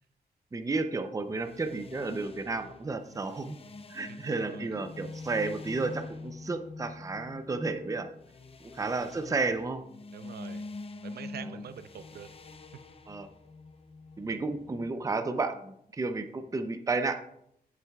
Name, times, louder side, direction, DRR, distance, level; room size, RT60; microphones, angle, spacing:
voice 1, 0.5-3.6 3.9-8.1 8.6-9.8 13.1-13.3 14.2-17.2, right 3 dB, 20° right, 8 dB, 0.5 m, -32 dB
sound 1, 1.2-14.9, left 3 dB, 35° left, 0.6 m, -45 dB
voice 2, 4.1-4.8 8.8-9.1 10.1-10.7 11.0-12.3 13.2-13.3, right 8 dB, 75° right, 11 dB, 0.6 m, -45 dB
11.0 x 7.2 x 2.3 m, 0.72 s
wide cardioid pair, 110°, 17 cm